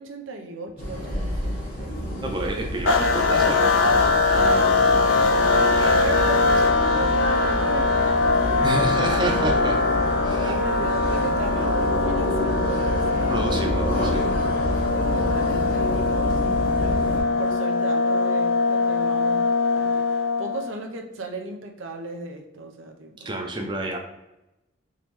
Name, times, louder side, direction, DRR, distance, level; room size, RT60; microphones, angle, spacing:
voice 1, 0.0-2.1 5.5-9.6 10.3-13.7 15.1-17.1 17.4-23.3, right 2 dB, 90° right, 3 dB, 0.6 m, -36 dB
sound 1, 0.8-17.2, equal, 50° left, 0.9 m, -29 dB
voice 2, 2.2-4.8 5.8-6.2 6.5-6.6 8.6-9.8 10.2-10.9 13.3-14.3 23.2-24.0, right 1 dB, 25° right, 2 dB, 0.5 m, -30 dB
sound 2, 2.9-20.7, left 3 dB, 85° left, 0.5 m, -22 dB
3.6 x 3.0 x 3.0 m, 0.94 s
head